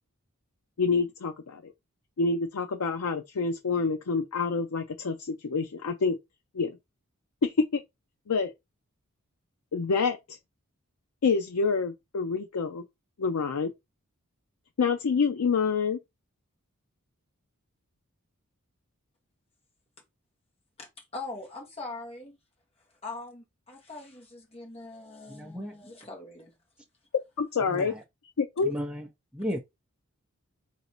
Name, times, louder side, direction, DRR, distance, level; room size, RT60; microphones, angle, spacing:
voice 1, 0.8-1.7 2.2-6.2 6.5-6.8 7.4-7.8 8.3-8.5 9.7-10.4 11.2-12.8 13.2-13.7 14.8-16.0 27.4-27.9 28.4-28.7, left 4 dB, 85° left, 0.5 m, -27 dB
voice 2, 20.8-22.4 23.0-26.5, left 3 dB, 30° left, 1.5 m, -42 dB
voice 3, 25.3-25.7 27.7-28.0 28.6-29.1 29.3-29.6, equal, 5° right, 0.7 m, -34 dB
4.0 x 2.7 x 4.3 m
head